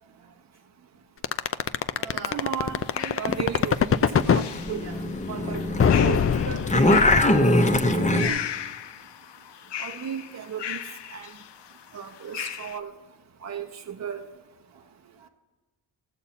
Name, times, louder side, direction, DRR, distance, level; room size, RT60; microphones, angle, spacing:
voice 1, 0.0-0.6 0.9-1.0 1.4-1.5 2.0-2.5 3.0-3.3 4.8-5.0 7.7-8.4 14.7-15.3, right 5 dB, 75° right, 3 dB, 1.5 m, -45 dB
sound 1, 1.2-4.5 5.8-7.2, left 7 dB, 30° left, 0.4 m, -21 dB
voice 2, 2.3-2.8 3.1-4.8 5.3-5.6 5.9-7.2 8.0-8.5 9.8-10.8 11.1-11.3 11.9-12.9 13.4-14.3, right 8 dB, 35° right, 5 dB, 0.8 m, -34 dB
sound 2, 2.4-12.8, left 10 dB, 65° left, 0.7 m, -37 dB
sound 3, 3.3-5.9 6.2-8.3, left 1 dB, 15° left, 0.8 m, -22 dB
15.5 x 6.9 x 4.2 m, 1.3 s
cardioid pair, 75°, 46 cm